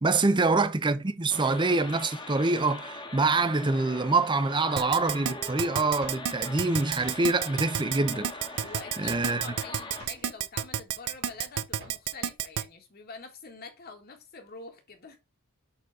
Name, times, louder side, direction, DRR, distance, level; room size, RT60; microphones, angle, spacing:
voice 1, 0.0-8.7 9.0-9.4, right 3 dB, 20° right, 0.6 m, -26 dB
sound 1, 1.3-10.0, left 3 dB, 20° left, 1.2 m, -41 dB
Drawer open or close, 4.6-7.7 8.0-12.2, right 2 dB, 55° right, 3.2 m, -52 dB
Keyboard (musical), 4.8-12.6, right 9 dB, 90° right, 0.6 m, -30 dB
voice 2, 8.6-15.2, left 4 dB, 45° left, 1.6 m, -46 dB
6.8 x 3.9 x 4.7 m
head